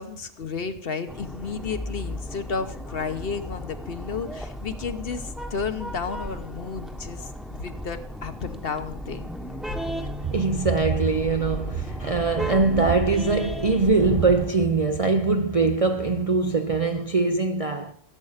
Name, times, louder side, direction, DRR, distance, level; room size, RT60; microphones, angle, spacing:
voice 1, 0.0-9.3, left 5 dB, 50° left, 1.1 m, -32 dB
sound 1, 1.1-14.5, equal, ahead, 1.0 m, -35 dB
voice 2, 9.9-17.9, right 4 dB, 40° right, 0.5 m, -22 dB
15.5 x 7.7 x 5.7 m
omnidirectional pair, 1.3 m